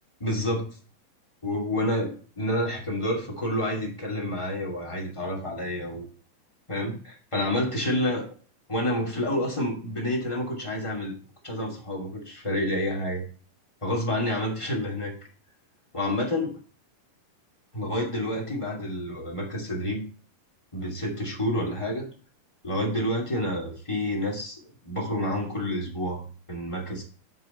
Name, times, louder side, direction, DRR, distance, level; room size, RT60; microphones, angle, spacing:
voice 1, 0.2-0.7 1.4-6.1 6.7-8.3 8.7-11.1 11.4-13.2 13.8-15.1 15.9-16.6 17.7-20.0 20.7-22.1 22.6-27.0, left 1 dB, 10° left, -2 dB, 2.2 m, -29 dB
7.7 x 7.0 x 4.4 m, 0.39 s
omnidirectional pair, 3.8 m